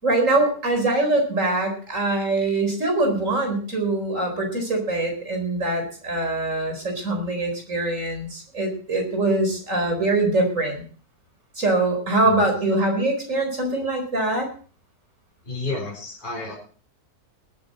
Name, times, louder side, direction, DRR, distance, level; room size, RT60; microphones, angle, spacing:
voice 1, 0.0-10.8 11.5-14.5, right 2 dB, 55° right, 3 dB, 4.6 m, -23 dB
voice 2, 15.4-16.6, left 3 dB, 30° left, -2 dB, 4.3 m, -31 dB
20.0 x 9.1 x 4.2 m, 0.40 s
omnidirectional pair, 1.6 m